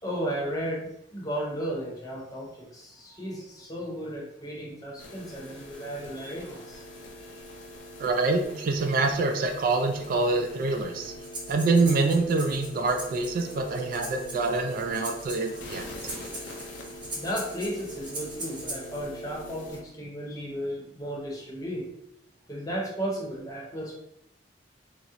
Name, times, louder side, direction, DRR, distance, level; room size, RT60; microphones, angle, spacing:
voice 1, 0.0-6.8 7.2-7.4 17.1-21.9 22.5-24.0, equal, 20° left, -3 dB, 0.7 m, -34 dB
sound 1, 5.0-19.8, left 1 dB, 85° left, 0.6 m, -43 dB
voice 2, 8.0-11.1 11.5-15.9, right 3 dB, 50° right, 5 dB, 0.3 m, -26 dB
Breathing, 11.2-19.0, right 2 dB, 25° right, 0.7 m, -40 dB
2.9 x 2.0 x 3.6 m, 0.79 s
head